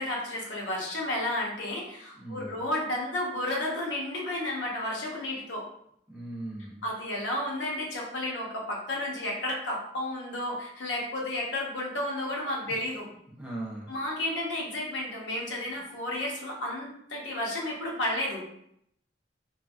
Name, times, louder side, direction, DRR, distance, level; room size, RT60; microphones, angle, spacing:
voice 1, 0.0-5.7 6.8-13.0 13.9-18.4, left 1 dB, 85° left, -3 dB, 0.9 m, -32 dB
voice 2, 2.2-2.6 6.1-6.8 13.4-13.9, right 2 dB, 10° right, -6 dB, 0.7 m, -39 dB
3.2 x 2.3 x 2.5 m, 0.72 s
head